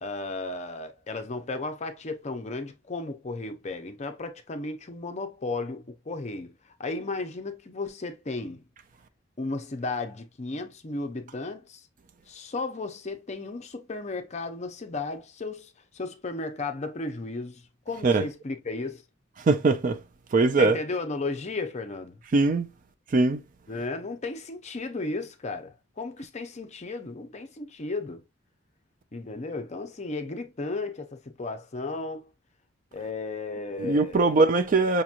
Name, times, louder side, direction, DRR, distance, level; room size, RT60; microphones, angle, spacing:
voice 1, 0.0-8.6 9.4-11.9 12.3-19.0 20.6-22.2 23.7-28.2 29.1-32.3 32.9-34.4, left 3 dB, 35° left, 0.6 m, -34 dB
voice 2, 19.5-20.0 20.3-20.8 22.3-22.7 23.1-23.4 33.8-35.0, right 3 dB, 40° right, 0.4 m, -21 dB
5.2 x 2.9 x 2.4 m
head